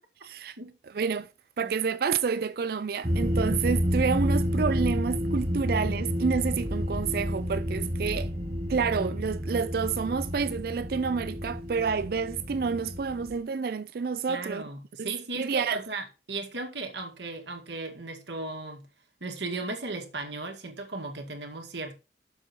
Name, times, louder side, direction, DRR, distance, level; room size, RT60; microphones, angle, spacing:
voice 1, 0.2-0.6 0.9-1.3 1.6-8.3 8.7-14.6 15.0-15.8, right 5 dB, 55° right, 0.4 m, -29 dB
sound 1, 3.0-13.4, equal, 35° right, 1.5 m, -30 dB
voice 2, 14.3-18.9 19.2-21.9, right 3 dB, 80° right, 2.1 m, -36 dB
7.0 x 6.1 x 4.4 m
head